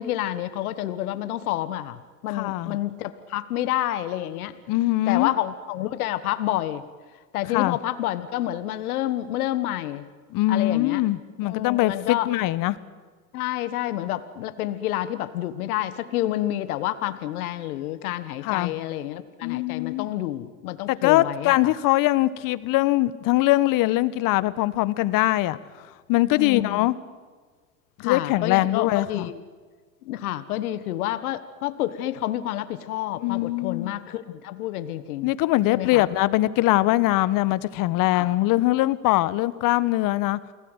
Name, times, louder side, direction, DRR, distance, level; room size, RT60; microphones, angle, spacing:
voice 1, 0.0-4.5 5.1-6.8 7.3-10.0 10.5-11.0 11.4-12.3 13.3-21.7 26.4-26.9 28.0-29.4 30.0-35.3 35.7-36.0 38.1-38.3, left 13 dB, 75° left, 12 dB, 1.6 m, -29 dB
voice 2, 2.3-2.8 4.7-5.3 7.5-7.8 10.3-12.8 18.4-18.7 19.4-20.1 20.9-25.6 26.1-26.9 28.0-29.3 33.2-33.9 35.2-40.4, left 17 dB, 45° left, 16 dB, 1.3 m, -22 dB
29.5 x 19.5 x 8.1 m, 1.5 s
hypercardioid pair, 110°, 44 cm